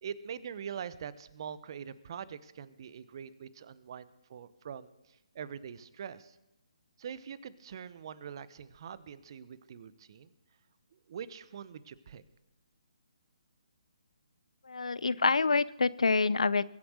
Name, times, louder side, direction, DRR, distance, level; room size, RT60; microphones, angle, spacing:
voice 1, 0.0-6.4 7.0-10.3 10.9-12.2, right 7 dB, 45° right, 17 dB, 0.9 m, -44 dB
voice 2, 14.7-16.6, left 4 dB, 80° left, 20 dB, 0.6 m, -27 dB
22.0 x 7.9 x 6.4 m, 0.90 s
figure-of-eight pair, 145°, 3 cm